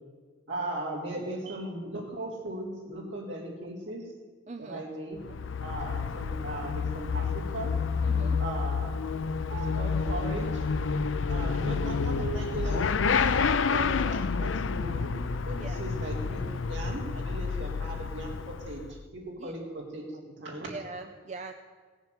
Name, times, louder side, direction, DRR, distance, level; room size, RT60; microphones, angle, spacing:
voice 1, 0.5-4.0 4.6-5.2 5.6-7.7 8.4-8.9 9.5-10.7 11.3-15.1 15.5-18.8 19.1-20.8, right 1 dB, 70° right, -3 dB, 3.7 m, -38 dB
voice 2, 4.5-4.9 8.0-8.4 15.6-15.8 19.4-19.5 20.7-21.5, right 3 dB, 35° right, 6 dB, 0.5 m, -41 dB
Motorcycle / Accelerating revving vroom, 5.2-19.0, left 5 dB, 80° left, 0.5 m, -29 dB
17.5 x 7.3 x 8.2 m, 1.5 s
head